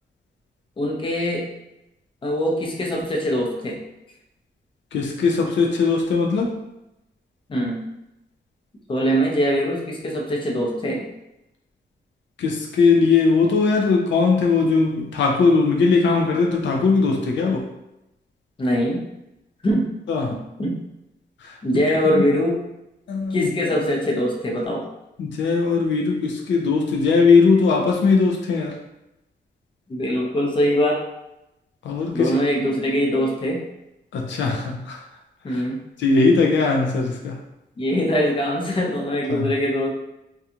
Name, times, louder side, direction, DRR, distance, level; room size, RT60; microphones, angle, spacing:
voice 1, 0.8-1.5 2.2-3.8 7.5-7.8 8.9-11.1 18.6-19.0 19.6-19.9 20.6-20.8 21.6-22.6 23.3-24.9 29.9-31.0 32.1-33.6 35.4-35.8 37.8-39.9, equal, 30° left, -1 dB, 0.5 m, -22 dB
voice 2, 4.9-6.6 12.4-17.7 20.1-20.4 21.4-21.6 22.0-22.3 23.1-23.8 25.2-28.8 31.8-32.4 34.1-35.0 35.5-35.6 36.0-37.4 39.3-39.5, left 4 dB, 85° left, 1 dB, 0.4 m, -19 dB
2.4 x 2.3 x 2.8 m, 0.89 s
wide cardioid pair, 125°, 19 cm